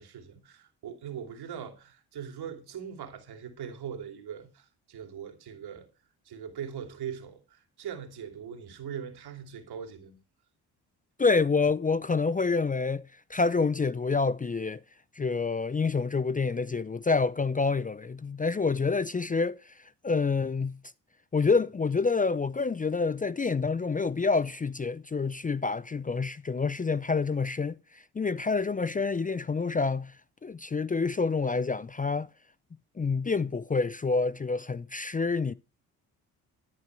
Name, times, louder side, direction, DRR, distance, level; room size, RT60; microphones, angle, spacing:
voice 1, 0.0-5.9 6.2-10.2, right 8 dB, 65° right, 2.8 m, -41 dB
voice 2, 11.2-13.0 13.3-14.8 15.2-19.7 20.0-20.8 21.3-30.1 30.4-32.3 33.0-35.5, left 4 dB, 20° left, 0.5 m, -27 dB
11.5 x 9.6 x 4.7 m
supercardioid pair, 55°, 41 cm